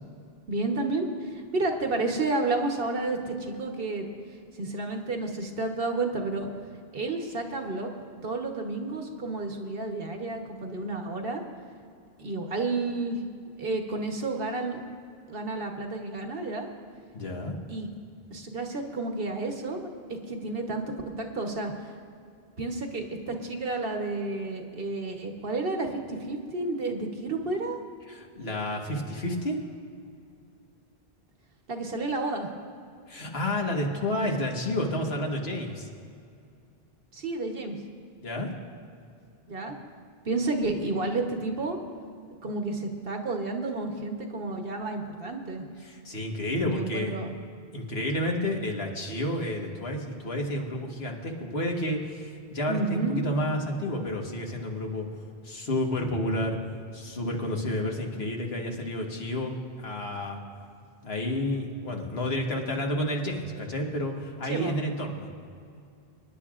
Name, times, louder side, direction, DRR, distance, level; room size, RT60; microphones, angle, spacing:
voice 1, 0.5-4.0 4.6-6.5 6.9-7.9 8.2-11.4 12.2-13.2 13.6-14.8 15.3-16.7 17.7-17.9 18.3-19.9 20.3-21.7 22.6-27.8 31.7-32.5 37.1-37.8 39.5-39.8 40.2-41.8 42.4-45.6 46.7-47.3 52.7-53.2 64.5-64.8, right 3 dB, 65° right, 4 dB, 1.3 m, -31 dB
voice 2, 17.1-17.6 28.1-29.6 33.1-35.9 38.2-38.5 45.8-47.2 47.7-55.1 55.4-56.6 56.9-59.5 59.8-60.4 61.0-65.3, left 1 dB, 70° left, 1 dB, 1.7 m, -30 dB
25.5 x 10.5 x 2.5 m, 2.4 s
omnidirectional pair, 1.1 m